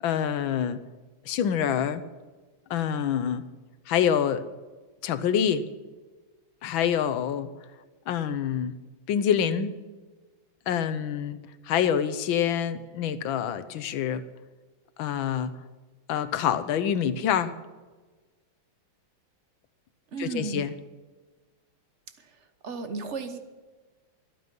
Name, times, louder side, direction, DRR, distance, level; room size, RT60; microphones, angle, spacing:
voice 1, 0.0-0.8 1.3-2.0 2.7-3.4 3.9-4.4 5.0-5.6 6.6-7.5 8.1-8.7 9.1-9.7 10.7-11.4 11.7-14.2 15.0-15.5 16.1-17.5 20.2-20.7, left 8 dB, 75° left, 13 dB, 1.6 m, -26 dB
voice 2, 20.1-20.7 22.2-22.3 22.6-23.4, right 4 dB, 40° right, 9 dB, 1.2 m, -34 dB
24.0 x 9.4 x 5.4 m, 1.3 s
omnidirectional pair, 2.2 m